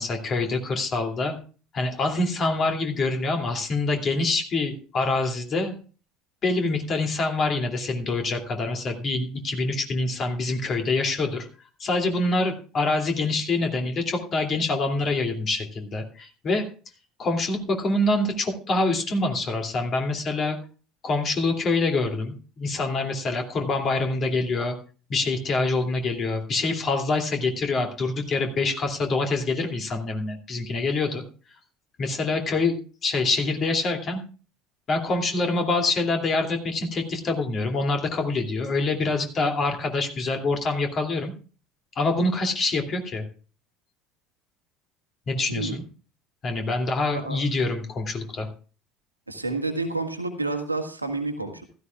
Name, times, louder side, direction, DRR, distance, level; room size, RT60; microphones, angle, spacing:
voice 1, 0.0-1.4 1.7-5.7 6.4-11.5 11.8-16.7 17.2-20.6 21.0-24.8 25.1-31.2 32.0-34.2 34.9-41.3 42.0-43.2 45.3-45.8 46.4-48.5, left 3 dB, 35° left, 3 dB, 2.7 m, -25 dB
voice 2, 45.5-45.8 47.1-47.4 49.3-51.6, right 3 dB, 90° right, 5 dB, 1.6 m, -29 dB
15.5 x 14.0 x 2.4 m, 0.37 s
figure-of-eight pair, 65°, 0 cm